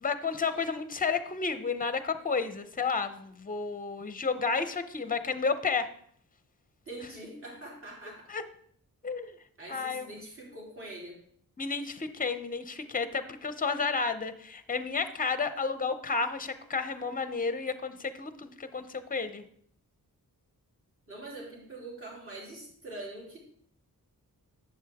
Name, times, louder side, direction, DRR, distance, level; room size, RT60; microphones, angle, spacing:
voice 1, 0.0-5.9 8.3-8.4 9.0-9.3 9.7-10.2 11.6-19.4, left 5 dB, 25° left, 11 dB, 0.6 m, -31 dB
voice 2, 6.8-8.3 9.6-11.2 21.1-23.4, right 2 dB, 35° right, -4 dB, 3.6 m, -43 dB
11.5 x 7.9 x 3.5 m, 0.63 s
wide cardioid pair, 160°, 36 cm